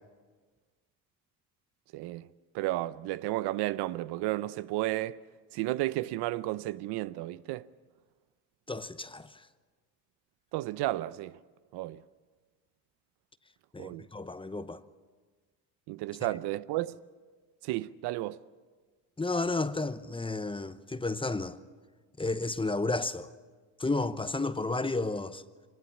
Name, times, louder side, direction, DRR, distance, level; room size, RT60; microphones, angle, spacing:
voice 1, 1.9-2.3 2.5-5.2 5.5-7.7 10.5-11.4 11.7-12.0 13.8-14.1 15.9-17.0 17.6-18.4, right 17 dB, 75° right, 0.7 m, -33 dB
voice 2, 8.7-9.4 13.7-14.8 19.2-21.6 22.2-23.3 23.8-25.4, left 3 dB, 15° left, 0.9 m, -32 dB
24.0 x 20.0 x 7.2 m
supercardioid pair, 80°, 41 cm